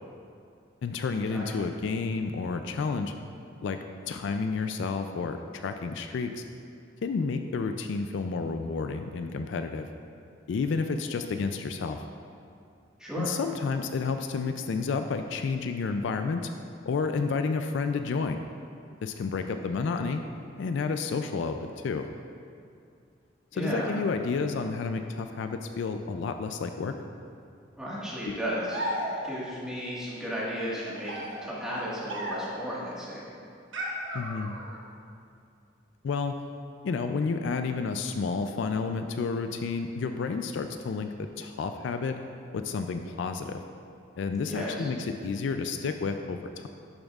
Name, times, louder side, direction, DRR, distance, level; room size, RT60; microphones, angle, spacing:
voice 1, 0.8-3.1 3.6-3.8 4.1-6.4 7.0-9.9 10.5-12.0 13.2-16.5 16.9-18.4 19.0-20.2 20.6-22.1 23.5-26.9 28.3-28.4 34.1-34.6 36.0-36.4 36.8-42.2 42.5-43.6 44.2-46.7, left 4 dB, 65° left, 7 dB, 0.3 m, -30 dB
voice 2, 23.5-23.9 27.8-28.9 29.2-33.2 44.4-44.9, equal, 5° right, -8 dB, 1.5 m, -34 dB
sound 1, 28.7-29.5 30.7-32.7 33.7-34.8, equal, 70° right, 1.0 m, -35 dB
10.5 x 7.0 x 2.4 m, 2.4 s
head